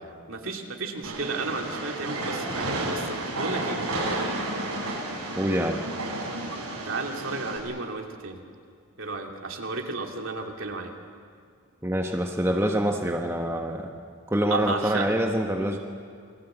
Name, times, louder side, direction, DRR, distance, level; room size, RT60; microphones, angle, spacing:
voice 1, 0.3-3.8 6.8-8.4 9.0-10.9 14.5-15.1, right 3 dB, 65° right, 2 dB, 2.7 m, -33 dB
Train, 1.0-7.6, right 2 dB, 85° right, 7.0 m, -31 dB
voice 2, 5.4-5.8 11.8-13.9 14.3-15.8, equal, 10° right, 1 dB, 1.2 m, -25 dB
29.0 x 22.5 x 8.0 m, 2.2 s
head